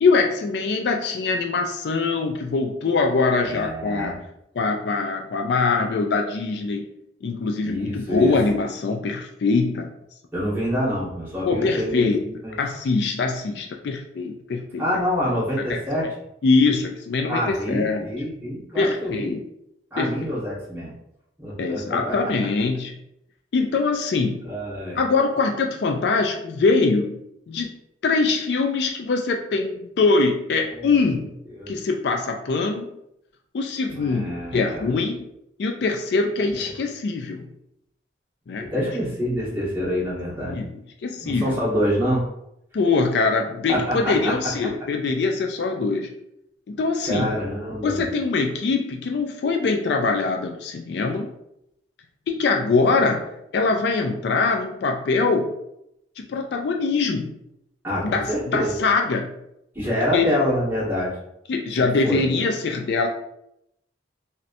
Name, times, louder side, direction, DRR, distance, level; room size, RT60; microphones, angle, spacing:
voice 1, 0.0-4.2 4.6-6.8 7.2-9.9 11.5-12.2 12.6-14.9 16.4-18.1 18.8-19.4 20.0-20.3 21.6-22.9 23.5-24.4 25.0-27.2 27.5-27.7 28.0-31.3 31.7-32.9 33.5-35.2 35.6-37.5 38.5-38.9 40.5-40.7 41.0-41.6 42.7-46.1 46.7-47.3 47.8-51.3 52.3-55.5 56.2-57.3 58.0-59.3 60.1-60.3 61.5-63.1, left 4 dB, 60° left, 3 dB, 0.3 m, -23 dB
voice 2, 3.4-4.1 7.6-8.3 10.3-12.6 14.8-16.1 17.3-19.3 19.9-20.9 21.4-22.3 24.4-25.0 30.7-31.0 31.5-31.7 33.9-34.7 38.7-40.6 41.2-42.2 43.7-44.3 47.1-48.0 57.8-58.7 59.7-61.2 61.8-62.2, equal, 10° right, -8 dB, 1.3 m, -26 dB
3.1 x 2.8 x 2.5 m, 0.79 s
head